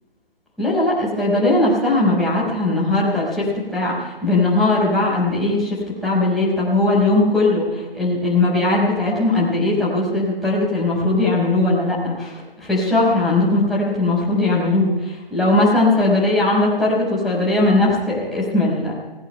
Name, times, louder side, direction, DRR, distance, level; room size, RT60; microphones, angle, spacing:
voice 1, 0.6-3.4 3.7-5.8 6.0-7.7 7.9-12.3 12.6-18.9, left 2 dB, ahead, -8 dB, 4.8 m, -19 dB
20.5 x 18.0 x 2.3 m, 1.2 s
figure-of-eight pair, 140°, 29 cm